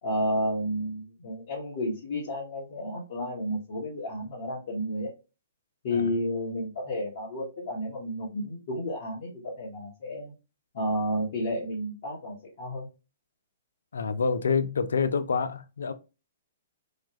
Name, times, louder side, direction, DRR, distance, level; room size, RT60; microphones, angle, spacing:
voice 1, 0.0-5.1 5.8-10.3 10.7-12.9, equal, 55° left, 1.3 m, -31 dB
voice 2, 13.9-15.9, left 5 dB, 80° left, 0.4 m, -27 dB
3.2 x 2.2 x 2.9 m
hypercardioid pair, 125°, 0 cm